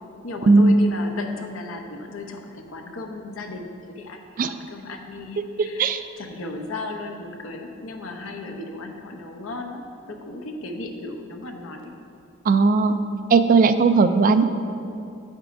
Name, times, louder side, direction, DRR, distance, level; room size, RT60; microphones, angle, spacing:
voice 1, 0.2-5.9 6.2-11.9, left 2 dB, 90° left, 3 dB, 0.8 m, -35 dB
voice 2, 12.5-13.0 13.3-14.4, right 4 dB, 45° right, 10 dB, 0.3 m, -16 dB
9.9 x 8.1 x 2.6 m, 2.6 s
head